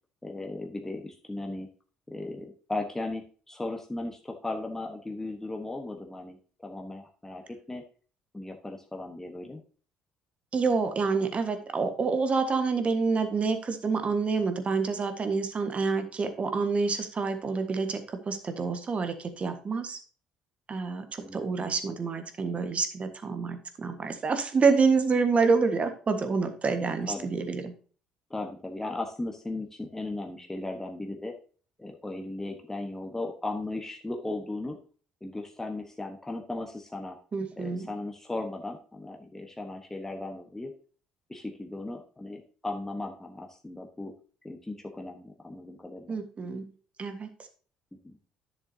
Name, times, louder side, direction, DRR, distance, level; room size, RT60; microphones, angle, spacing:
voice 1, 0.2-1.7 2.1-7.8 8.3-9.6 21.2-21.7 27.0-27.3 28.3-31.3 31.8-34.8 35.2-37.2 37.6-40.7 41.3-44.1 44.4-46.1 48.0-48.1, left 2 dB, 10° left, 2 dB, 1.2 m, -37 dB
voice 2, 10.5-20.0 20.7-27.7 37.3-37.9 46.1-46.7 47.0-47.3, right 4 dB, 40° right, 7 dB, 1.5 m, -27 dB
10.5 x 6.7 x 2.8 m, 0.40 s
hypercardioid pair, 55°, 3 cm